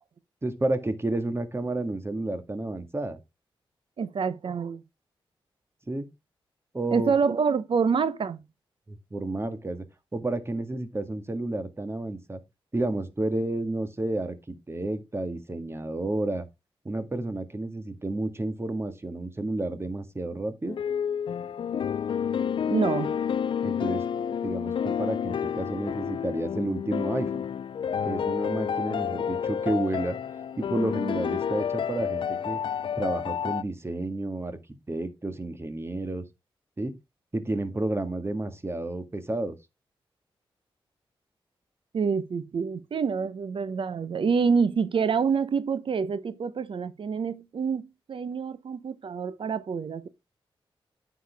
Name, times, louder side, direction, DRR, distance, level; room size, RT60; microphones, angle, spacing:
voice 1, 0.4-3.2 5.9-6.1 6.7-7.1 8.9-9.8 10.1-12.4 12.7-16.5 16.8-20.8 23.6-24.0 24.4-27.4 28.0-30.2 30.6-32.6 33.0-34.6 34.9-36.2 36.8-36.9 37.3-39.5, right 2 dB, 25° right, 1.7 m, -31 dB
voice 2, 4.0-4.8 6.9-8.4 22.7-23.2 41.9-50.1, right 5 dB, 65° right, 0.9 m, -27 dB
sound 1, 20.7-33.6, left 8 dB, 60° left, 0.4 m, -30 dB
9.5 x 6.4 x 3.4 m
cardioid pair, 65°, 9 cm